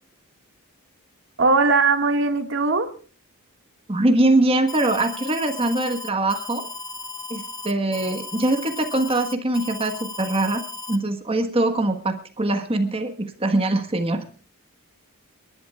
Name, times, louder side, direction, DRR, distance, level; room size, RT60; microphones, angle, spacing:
voice 1, 1.4-2.9, right 3 dB, 55° right, 6 dB, 1.9 m, -19 dB
voice 2, 3.9-6.7 7.3-10.6 10.9-14.2, right 2 dB, 25° right, 6 dB, 1.4 m, -22 dB
Alarm, 4.7-11.0, left 3 dB, 15° left, 1.0 m, -36 dB
30.0 x 11.5 x 2.4 m, 0.38 s
head